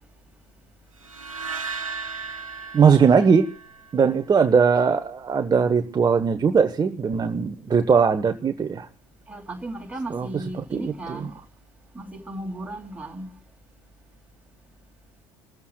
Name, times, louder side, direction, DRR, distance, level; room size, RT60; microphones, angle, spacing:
sound 1, 1.0-4.2, right 5 dB, 85° right, 0.9 m, -35 dB
voice 1, 2.7-3.5 3.9-8.9 10.1-10.3 10.7-11.3, right 6 dB, 25° right, 1.1 m, -20 dB
voice 2, 9.3-11.3 11.9-13.3, right 1 dB, 10° right, 2.9 m, -35 dB
27.5 x 14.0 x 2.3 m
figure-of-eight pair, 60°, 17 cm